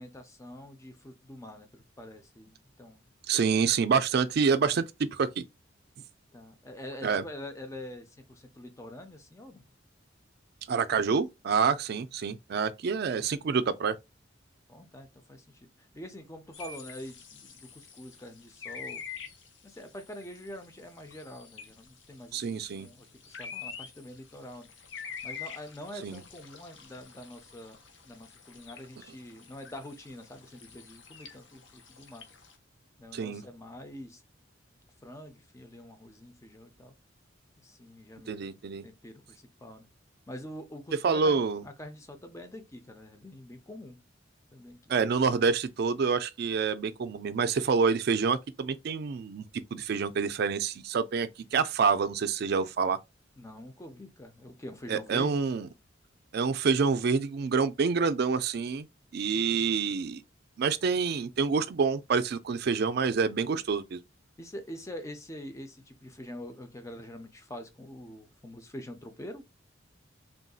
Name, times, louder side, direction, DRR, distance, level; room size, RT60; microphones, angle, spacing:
voice 1, 0.0-3.0 6.3-9.6 14.7-19.0 19.6-24.7 25.2-27.8 28.1-32.2 33.0-34.2 35.0-36.9 37.6-38.5 38.8-39.9 40.3-44.0 44.5-44.9 53.4-55.4 64.4-69.4, left 1 dB, 15° left, 0.5 m, -45 dB
voice 2, 3.3-5.4 7.0-7.2 10.7-14.0 22.3-22.9 26.0-26.2 33.1-33.4 38.3-38.8 41.0-41.6 44.9-53.0 54.9-55.7 56.3-58.9 59.1-60.2 60.6-64.0, right 5 dB, 55° right, 0.4 m, -27 dB
sound 1, 16.5-32.5, left 6 dB, 75° left, 0.7 m, -47 dB
3.6 x 2.6 x 2.3 m
head